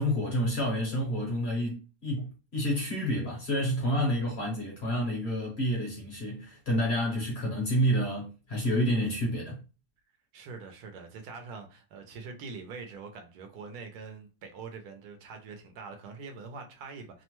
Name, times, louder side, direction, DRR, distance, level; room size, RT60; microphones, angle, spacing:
voice 1, 0.0-9.6, equal, 50° left, 0.9 m, -29 dB
voice 2, 10.3-17.2, right 4 dB, 75° right, 1.1 m, -44 dB
2.9 x 2.1 x 2.9 m
omnidirectional pair, 1.7 m